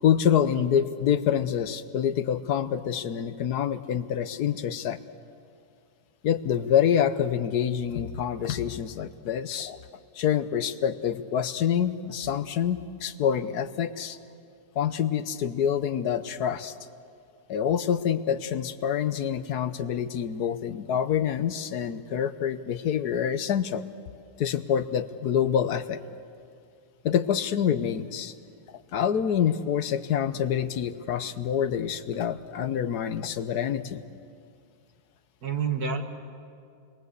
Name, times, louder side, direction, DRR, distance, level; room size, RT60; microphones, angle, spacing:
voice 1, 0.0-5.0 6.2-9.8 10.1-14.2 14.7-16.7 17.5-23.8 24.4-26.0 27.0-28.3 28.7-34.0, left 9 dB, 70° left, 12 dB, 1.4 m, -26 dB
voice 2, 35.4-36.0, right 6 dB, 65° right, 5 dB, 2.2 m, -29 dB
29.0 x 21.5 x 8.1 m, 2.3 s
omnidirectional pair, 1.8 m